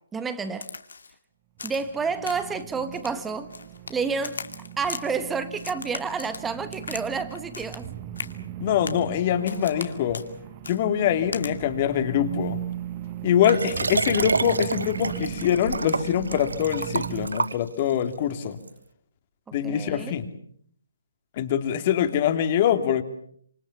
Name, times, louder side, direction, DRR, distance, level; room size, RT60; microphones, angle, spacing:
voice 1, 0.1-0.7 1.6-3.5 3.9-4.4 4.8-7.9 19.5-20.2, right 5 dB, 10° right, 11 dB, 1.7 m, -30 dB
Crack, 0.6-1.1 1.6-1.9 2.2-2.6 2.9-4.0 4.2-5.0 5.6-7.1 7.3-7.9 8.2-8.3 8.8-9.1 9.5-9.9 10.1-10.3 10.6-10.8 11.3-11.5, left 4 dB, 70° left, 2.5 m, -38 dB
sound 1, 1.6-17.3, right 12 dB, 30° right, 1.6 m, -38 dB
voice 2, 8.6-10.2 10.7-12.6 13.2-18.6 19.5-20.3 21.4-23.0, left 9 dB, 35° left, 9 dB, 2.7 m, -24 dB
Liquid, 13.4-18.0 18.7-18.8, right 4 dB, 80° right, 1.0 m, -29 dB
27.0 x 25.0 x 7.2 m, 0.64 s
figure-of-eight pair, 145°, 0 cm